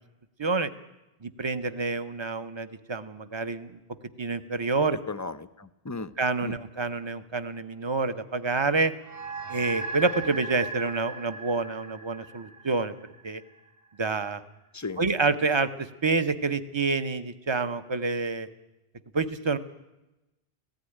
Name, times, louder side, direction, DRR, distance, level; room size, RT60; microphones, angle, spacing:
voice 1, 0.4-0.7 1.2-3.8 4.2-5.0 6.2-8.9 9.5-12.9 13.2-13.4 14.0-14.4 15.0-18.5 19.1-19.6, right 4 dB, 30° right, 12 dB, 0.9 m, -28 dB
voice 2, 4.9-6.1 6.4-6.6 14.7-15.0, left 3 dB, 20° left, 14 dB, 0.5 m, -36 dB
sound 1, 9.0-13.7, right 3 dB, 65° right, 3.3 m, -38 dB
17.0 x 15.5 x 10.0 m, 0.99 s
omnidirectional pair, 1.0 m